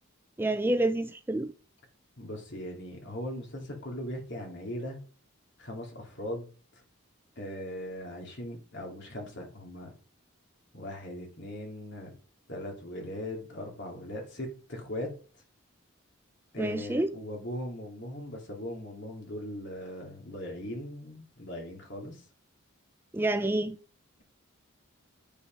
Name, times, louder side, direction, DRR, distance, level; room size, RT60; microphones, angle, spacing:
voice 1, 0.4-1.5 16.6-17.1 23.1-23.8, right 1 dB, 10° right, 0.4 m, -28 dB
voice 2, 2.2-5.0 5.6-6.5 7.4-9.9 10.7-12.1 12.5-15.1 16.5-22.2, left 1 dB, 55° left, 2.6 m, -39 dB
8.4 x 5.6 x 5.2 m
head